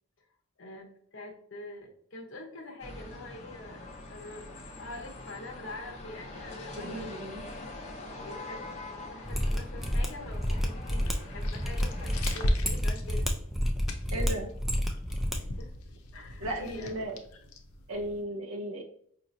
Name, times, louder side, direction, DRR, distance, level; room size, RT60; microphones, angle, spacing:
voice 1, 0.6-3.8 4.1-7.2 8.0-13.3 15.6-15.7 16.1-17.0, left 2 dB, 60° left, 2 dB, 0.8 m, -45 dB
sound 1, 2.8-12.4, left 2 dB, 30° left, 0.7 m, -44 dB
voice 2, 6.8-7.4 14.1-14.5 16.4-17.2 17.9-18.8, right 1 dB, 75° right, 2 dB, 0.6 m, -35 dB
Mechanisms, 9.2-15.4 15.6-15.7, equal, ahead, 0.3 m, -30 dB
sound 2, 10.9-18.2, left 1 dB, 90° left, 0.6 m, -37 dB
4.9 x 2.9 x 2.6 m, 0.62 s
head